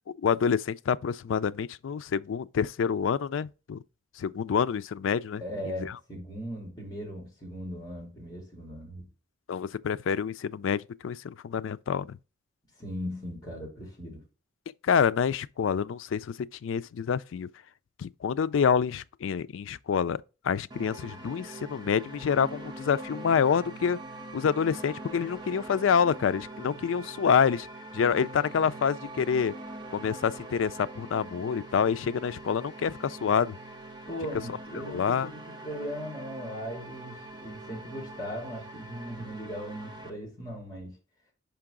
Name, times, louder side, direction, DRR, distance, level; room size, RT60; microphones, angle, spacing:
voice 1, 0.2-3.8 4.2-5.9 9.5-12.2 14.8-17.5 18.0-20.2 20.4-24.0 24.3-27.7 27.9-29.5 29.9-33.6 34.9-35.3, left 7 dB, 80° left, 0.4 m, -27 dB
voice 2, 5.4-9.1 12.8-14.2 34.1-41.0, equal, 20° left, 2.9 m, -38 dB
sound 1, 20.7-40.1, right 2 dB, 25° right, 0.8 m, -43 dB
5.8 x 5.3 x 3.7 m
head